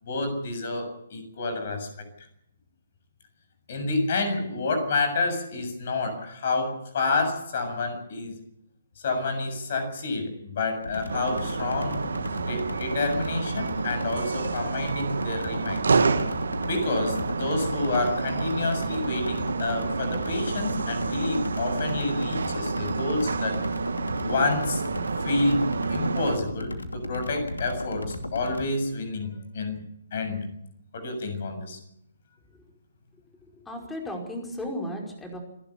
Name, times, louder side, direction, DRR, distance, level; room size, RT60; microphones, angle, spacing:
voice 1, 0.0-1.9 3.7-8.3 9.0-12.0 12.4-16.0 16.7-23.6 24.2-24.8 25.2-29.8 30.1-30.5 30.9-31.8, left 3 dB, 50° left, 7 dB, 7.2 m, -29 dB
sound 1, 10.8-28.7, left 1 dB, 80° left, 2.7 m, -35 dB
sound 2, 11.1-26.4, right 4 dB, 65° right, 1.7 m, -29 dB
voice 2, 33.5-35.4, left 1 dB, 5° left, 1 dB, 5.1 m, -34 dB
28.5 x 12.0 x 8.4 m, 0.76 s
figure-of-eight pair, 135°, 0 cm